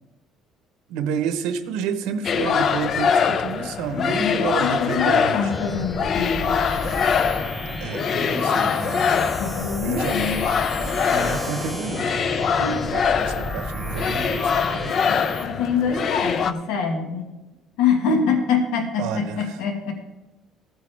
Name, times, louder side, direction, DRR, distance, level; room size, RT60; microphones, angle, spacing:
voice 1, 0.9-5.4 7.8-9.3 9.8-10.2 11.1-12.1 12.6-15.2 19.0-19.4, right 7 dB, 90° right, 9 dB, 1.0 m, -30 dB
sound 1, 2.2-16.5, left 6 dB, 35° left, 0.4 m, -23 dB
voice 2, 3.9-6.6 9.4-10.4 10.9-11.0 12.6-12.9 15.0-17.2 17.8-19.9, left 5 dB, 85° left, 4 dB, 1.7 m, -25 dB
sound 2, 5.5-15.5, equal, 5° left, 1.3 m, -32 dB
14.5 x 9.2 x 3.4 m, 1.1 s
cardioid pair, 175°, 0 cm